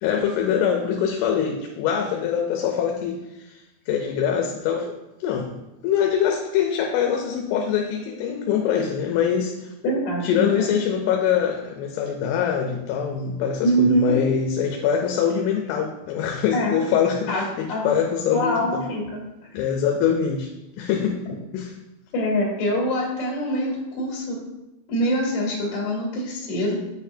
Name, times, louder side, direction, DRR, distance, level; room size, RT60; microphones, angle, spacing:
voice 1, 0.0-4.9 5.2-9.7 10.2-18.8 19.5-20.5 20.8-21.2 21.5-21.7, left 8 dB, 85° left, 2 dB, 3.0 m, -24 dB
voice 2, 9.8-10.8 13.6-14.1 16.5-16.7 17.3-17.4 17.7-17.8 18.3-19.2 22.1-24.4 24.9-26.8, equal, 50° left, -5 dB, 2.9 m, -24 dB
9.0 x 4.4 x 2.7 m, 0.95 s
omnidirectional pair, 5.7 m